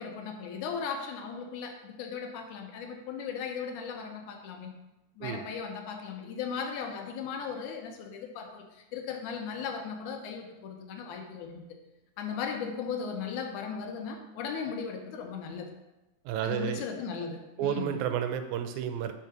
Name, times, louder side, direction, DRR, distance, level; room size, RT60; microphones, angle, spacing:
voice 1, 0.0-4.8 5.2-11.7 12.2-15.7 16.4-18.0, left 6 dB, 80° left, 4 dB, 2.3 m, -37 dB
voice 2, 16.3-16.8 17.6-19.1, right 9 dB, 80° right, 8 dB, 1.9 m, -31 dB
5.8 x 4.6 x 5.9 m, 0.99 s
omnidirectional pair, 3.5 m